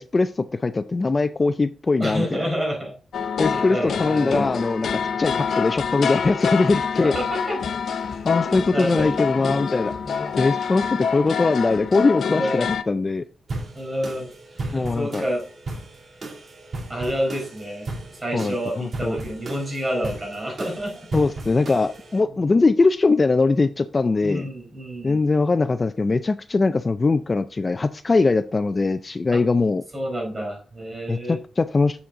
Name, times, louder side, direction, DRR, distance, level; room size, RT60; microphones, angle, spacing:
voice 1, 0.0-2.5 3.4-4.9 5.2-7.1 8.2-9.9 10.4-10.8 11.1-13.2 14.7-15.2 18.3-19.2 21.1-24.5 25.0-29.8 31.1-32.1, left 3 dB, 25° left, 11 dB, 0.3 m, -21 dB
voice 2, 2.0-2.9 3.5-4.5 7.0-7.6 8.1-9.6 10.0-10.3 12.3-12.7 13.7-15.5 16.9-21.0 22.4-22.5 24.2-25.2 29.3-29.4 29.9-31.4, equal, 20° right, -1 dB, 4.3 m, -29 dB
sound 1, 3.1-12.8, left 6 dB, 70° left, 0.6 m, -26 dB
sound 2, 13.5-22.2, right 2 dB, 45° right, 2.2 m, -36 dB
7.5 x 7.0 x 3.7 m, 0.38 s
wide cardioid pair, 145°, 0 cm